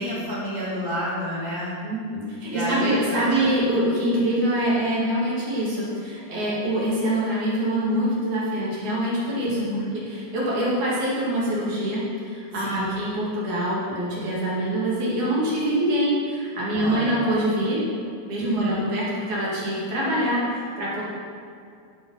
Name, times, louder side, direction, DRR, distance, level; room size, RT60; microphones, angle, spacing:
voice 1, 0.0-1.7 2.5-3.6 9.5-10.0 12.6-13.0 16.7-17.3 18.4-18.8, equal, 15° left, -8 dB, 1.9 m, -30 dB
voice 2, 1.8-9.6 9.9-21.0, right 1 dB, 60° right, -7 dB, 3.9 m, -25 dB
11.0 x 7.5 x 5.7 m, 2.3 s
omnidirectional pair, 3.8 m